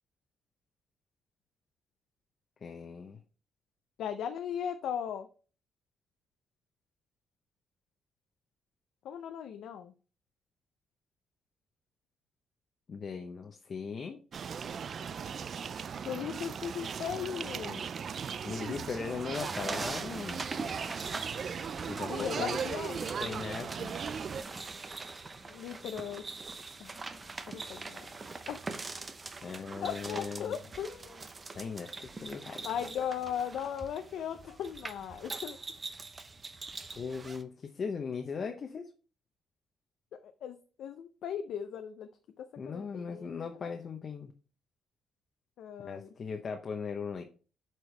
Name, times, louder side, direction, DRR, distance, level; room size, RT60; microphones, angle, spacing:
voice 1, 2.6-3.2 12.9-14.2 18.4-20.4 21.9-22.6 23.2-24.0 29.4-30.6 31.5-32.7 37.0-38.9 42.6-44.3 45.8-47.2, left 5 dB, 45° left, 4 dB, 0.8 m, -38 dB
voice 2, 4.0-5.3 9.0-9.9 16.1-17.8 22.1-23.1 25.5-26.2 26.8-27.0 27.5-28.1 28.5-28.6 29.8-31.2 32.6-35.6 40.2-42.1 42.4-43.3 43.6-43.7 45.6-46.1, left 8 dB, 75° left, 7 dB, 0.6 m, -38 dB
sound 1, 14.3-24.4, right 7 dB, 50° right, 0.3 m, -38 dB
sound 2, 19.3-37.4, right 3 dB, 30° right, 0.8 m, -42 dB
8.0 x 4.6 x 3.3 m, 0.37 s
cardioid pair, 90°, 0 cm